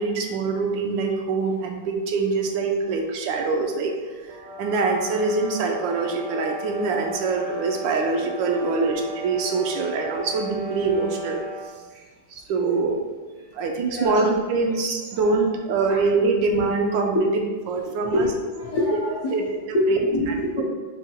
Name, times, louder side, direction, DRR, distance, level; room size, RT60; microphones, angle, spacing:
voice 1, 0.0-3.9 4.6-11.4 12.3-13.0 13.5-17.3 17.7-18.3 19.3-19.4 19.9-20.0, right 4 dB, 85° right, 2 dB, 1.3 m, -24 dB
sound 1, 4.3-11.8, right 2 dB, 70° right, 1.3 m, -36 dB
voice 2, 18.1-19.5 19.7-20.6, left 1 dB, 80° left, -8 dB, 0.4 m, -25 dB
4.8 x 2.3 x 4.3 m, 1.3 s
omnidirectional pair, 2.0 m